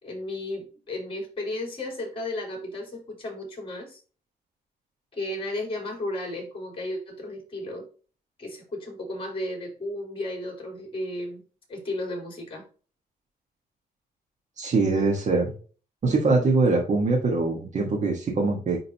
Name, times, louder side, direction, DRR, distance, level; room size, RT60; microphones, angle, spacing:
voice 1, 0.0-4.0 5.1-7.9 8.4-11.4 11.7-12.6, left 1 dB, 35° left, 1 dB, 3.8 m, -34 dB
voice 2, 14.6-15.5 16.0-18.8, right 3 dB, 45° right, -1 dB, 1.6 m, -23 dB
10.0 x 3.8 x 2.9 m, 0.38 s
cardioid pair, 125°, 16 cm